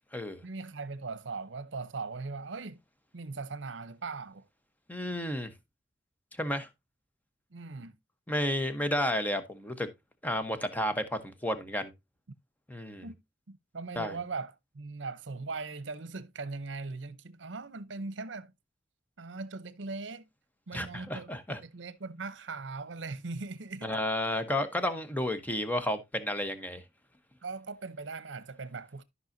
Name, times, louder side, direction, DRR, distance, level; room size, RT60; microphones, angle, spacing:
voice 1, 0.4-2.8 3.1-4.4 7.5-8.0 13.0-13.2 13.5-18.5 19.2-20.3 20.7-24.0 27.4-29.0, right 3 dB, 75° right, 0.8 m, -40 dB
voice 2, 4.9-5.5 6.4-6.7 8.3-9.9 10.2-11.9 12.7-13.0 14.0-14.2 20.7-21.6 23.8-26.8, left 1 dB, 10° left, 0.9 m, -32 dB
13.5 x 5.5 x 2.7 m
head